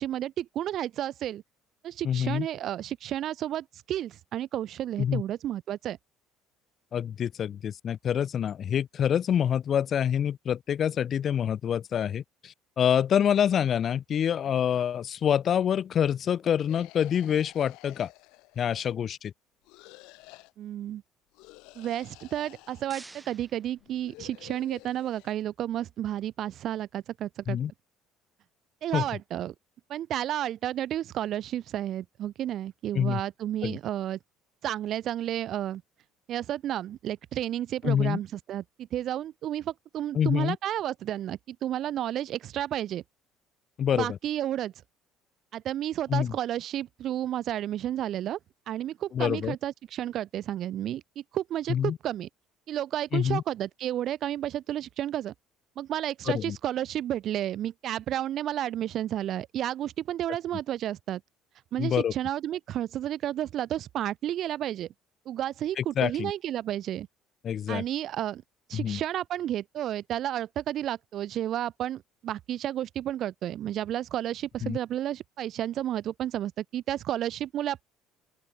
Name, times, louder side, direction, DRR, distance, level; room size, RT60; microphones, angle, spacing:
voice 1, 0.0-1.4 1.8-6.0 20.6-21.0 21.8-27.6 28.8-29.5 29.9-34.2 34.6-35.8 36.3-43.0 43.9-44.7 45.5-48.4 48.7-52.3 52.7-55.3 55.8-61.2 61.7-64.9 65.3-67.1 67.7-68.4 68.7-77.8, right 12 dB, 60° right, 0.3 m, -32 dB
voice 2, 2.0-2.5 5.0-5.2 6.9-18.1 18.6-19.3 27.5-27.7 28.9-29.0 32.9-33.2 33.6-33.8 37.8-38.2 40.1-40.6 43.8-44.2 46.1-46.3 49.1-49.6 51.7-52.0 53.1-53.4 56.3-56.6 61.8-62.1 65.8-66.3 67.4-67.8 68.7-69.0 74.6-74.8, left 9 dB, 45° left, 0.5 m, -26 dB
sound 1, 16.7-19.0 19.6-20.5 21.3-23.0 23.8-25.3, left 24 dB, 85° left, 7.5 m, -51 dB
sound 2, 22.4-24.6, right 2 dB, 15° right, 7.3 m, -52 dB
open air
cardioid pair, 100°, 0 cm